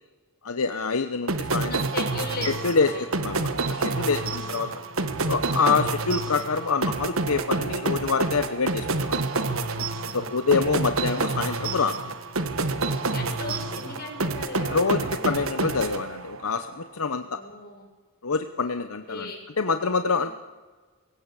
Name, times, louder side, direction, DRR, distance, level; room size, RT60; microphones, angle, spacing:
voice 1, 0.4-1.7 2.4-4.7 5.3-9.2 10.1-12.1 14.7-17.4 18.2-19.3 19.6-20.3, left 4 dB, 80° left, 9 dB, 0.9 m, -26 dB
sound 1, 1.3-16.6, right 3 dB, 70° right, 1.5 m, -28 dB
voice 2, 1.7-3.0 4.3-4.7 10.1-11.2 12.8-15.5 17.2-17.9 19.1-19.4 20.2-20.3, left 2 dB, 45° left, 2 dB, 6.7 m, -38 dB
20.5 x 17.0 x 8.3 m, 1.4 s
head